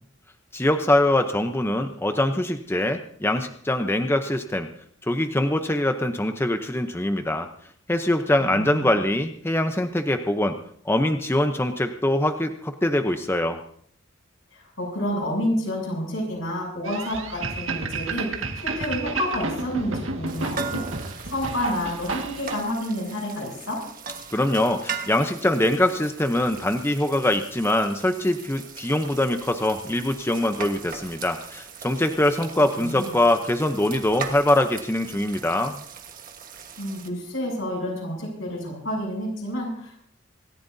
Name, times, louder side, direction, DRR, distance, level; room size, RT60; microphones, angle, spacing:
voice 1, 0.5-4.7 5.0-7.5 7.9-10.6 10.8-13.6 24.3-35.8, left 1 dB, 10° left, 7 dB, 0.7 m, -23 dB
voice 2, 8.4-9.0 14.5-18.3 18.6-23.8 32.8-33.1 36.8-40.0, left 1 dB, 80° left, -1 dB, 7.8 m, -29 dB
sound 1, 16.8-22.6, right 3 dB, 85° right, 1.8 m, -31 dB
sound 2, 20.3-37.1, right 6 dB, 45° right, 1.4 m, -39 dB
26.5 x 14.5 x 2.7 m, 0.63 s
head